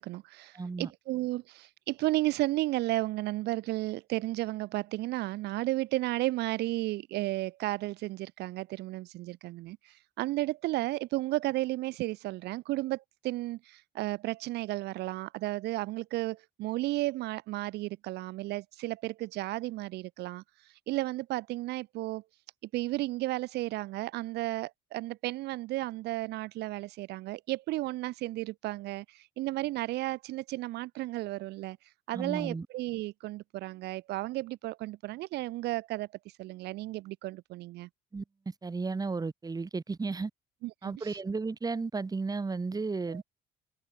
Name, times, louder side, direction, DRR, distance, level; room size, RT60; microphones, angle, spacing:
voice 1, 0.0-22.2 22.7-31.8 32.1-37.9 40.6-41.2 43.1-43.2, right 18 dB, 80° right, 1.6 m, -33 dB
voice 2, 0.5-0.9 32.1-32.7 38.1-40.3 40.8-43.2, right 4 dB, 20° right, 4.3 m, -34 dB
cardioid pair, 110°, 17 cm